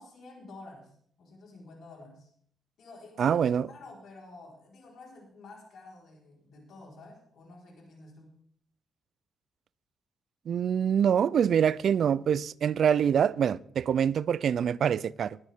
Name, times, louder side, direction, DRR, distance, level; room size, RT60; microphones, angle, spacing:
voice 1, 0.0-2.3 2.8-3.4 3.7-8.3, left 2 dB, 70° left, 4.3 m, -50 dB
voice 2, 3.2-3.7 10.5-15.4, right 8 dB, 60° right, 0.4 m, -25 dB
20.0 x 9.0 x 3.6 m
cardioid pair, 110°, 0 cm